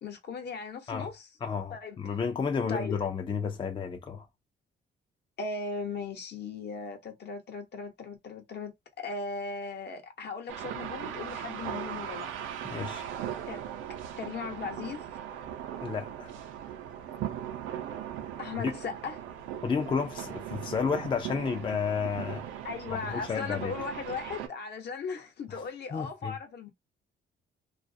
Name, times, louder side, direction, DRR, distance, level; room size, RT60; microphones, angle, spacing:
voice 1, 0.0-1.3 1.7-2.0 2.7-3.0 5.4-12.3 13.5-13.6 14.2-15.0 18.4-19.2 22.6-26.7, left 4 dB, 60° left, 0.9 m, -37 dB
voice 2, 1.4-4.3 12.6-13.1 15.8-16.3 18.6-18.7 19.6-22.5 22.9-23.7 25.5-25.6 25.9-26.4, left 6 dB, 25° left, 0.4 m, -31 dB
sound 1, 10.5-24.5, right 10 dB, 90° right, 0.5 m, -39 dB
2.4 x 2.0 x 2.6 m
cardioid pair, 90°, 20 cm